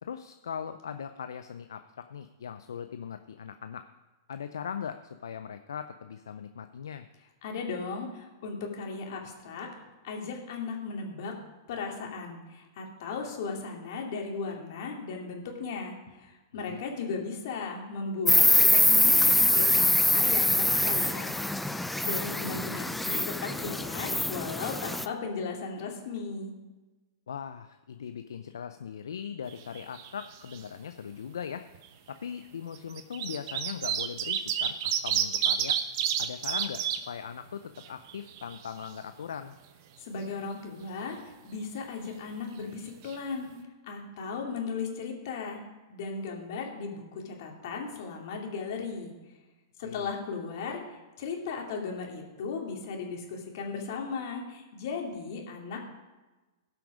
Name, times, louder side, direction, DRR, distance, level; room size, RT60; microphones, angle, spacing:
voice 1, 0.0-3.8 4.3-7.1 16.5-16.8 27.3-31.7 32.1-35.8 36.2-39.6 49.8-50.1, left 7 dB, 75° left, 9 dB, 0.5 m, -40 dB
voice 2, 7.4-9.7 10.0-11.3 11.7-21.3 21.6-26.5 40.0-43.5 43.8-45.6 45.9-49.1 49.8-55.8, left 4 dB, 60° left, 0 dB, 2.5 m, -36 dB
Insect, 18.3-25.1, left 1 dB, 5° left, 0.4 m, -24 dB
sound 1, 29.5-30.3 30.5-30.6 31.7-31.9 32.8-37.0 37.4-37.5 37.8-38.9 42.7-42.8 43.1-43.2, right 9 dB, 50° right, 1.0 m, -29 dB
17.5 x 5.9 x 5.1 m, 1.2 s
hypercardioid pair, 115°, 2 cm